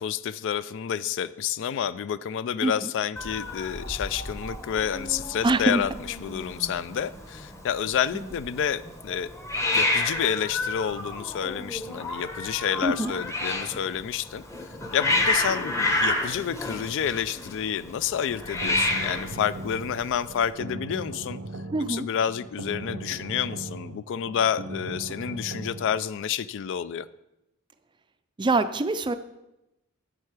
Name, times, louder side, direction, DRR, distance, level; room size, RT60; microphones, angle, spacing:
voice 1, 0.0-5.9 6.2-9.3 9.7-14.4 14.9-21.4 21.9-27.1, left 8 dB, 60° left, 16 dB, 0.3 m, -29 dB
Hiss, 3.2-20.5, left 2 dB, 15° left, 0.9 m, -30 dB
voice 2, 5.4-5.8 8.1-8.3 12.8-13.1 21.7-22.1 28.4-29.1, right 2 dB, 20° right, 11 dB, 0.4 m, -24 dB
sound 1, 18.3-26.0, right 2 dB, 85° right, 0.8 m, -38 dB
9.0 x 7.4 x 4.8 m, 0.92 s
head